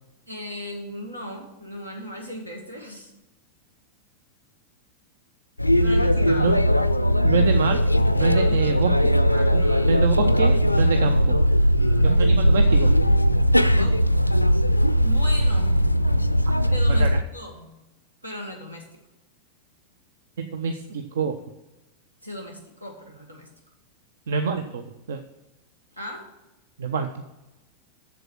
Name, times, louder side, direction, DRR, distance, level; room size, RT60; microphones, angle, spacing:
voice 1, 0.3-3.1 5.7-6.6 8.3-10.1 11.8-12.2 13.6-14.1 15.0-15.8 16.7-17.1 17.3-17.7 18.2-18.8 22.2-23.5 26.0-26.3, equal, 85° right, 2 dB, 1.9 m, -37 dB
sound 1, 5.6-17.2, equal, 90° left, 0.4 m, -19 dB
voice 2, 7.2-7.8 8.1-8.9 9.5-11.4 12.0-12.9 17.0-17.1 20.4-21.3 24.3-25.2 26.8-27.1, right 5 dB, 60° right, 8 dB, 0.6 m, -26 dB
7.8 x 7.2 x 6.0 m, 0.97 s
figure-of-eight pair, 90°, 0 cm